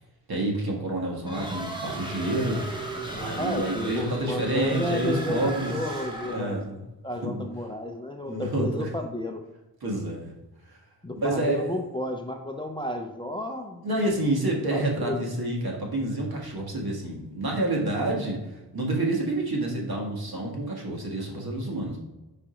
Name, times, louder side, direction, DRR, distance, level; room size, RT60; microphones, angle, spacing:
voice 1, 0.3-2.8 3.1-5.8 6.3-6.8 7.2-7.5 8.2-8.9 9.8-10.3 10.7-10.8 11.2-11.7 13.8-22.0, right 1 dB, 60° right, -1 dB, 1.7 m, -28 dB
sound 1, 1.2-6.6, right 1 dB, 10° right, 1.0 m, -35 dB
voice 2, 3.4-6.7 7.0-9.4 11.0-13.8 14.7-15.3 21.3-21.4, left 1 dB, 10° left, 3 dB, 0.5 m, -32 dB
5.0 x 4.5 x 5.0 m, 1.1 s
wide cardioid pair, 150°, 41 cm